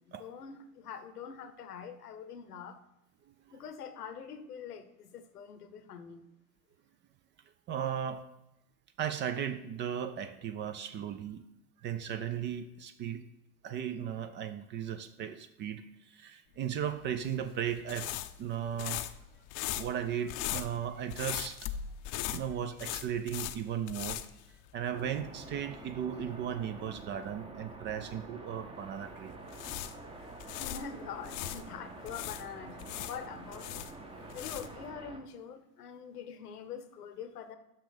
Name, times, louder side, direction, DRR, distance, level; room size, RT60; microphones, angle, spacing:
voice 1, 0.0-2.8 3.5-6.2 30.2-33.9 34.3-37.6, left 7 dB, 90° left, 10 dB, 0.9 m, -44 dB
voice 2, 7.7-8.2 9.0-11.4 11.8-13.2 13.6-15.8 16.2-18.1 18.4-19.0 19.8-21.6 22.3-24.2 24.7-29.3, right 9 dB, 25° right, 11 dB, 0.4 m, -36 dB
sound 1, 17.0-25.1 25.4-25.5 29.3-31.6 32.1-34.9, left 12 dB, 50° left, 0.6 m, -39 dB
sound 2, 24.9-35.2, right 2 dB, 10° right, 0.8 m, -48 dB
6.1 x 5.8 x 5.0 m, 0.93 s
hypercardioid pair, 95°, 45 cm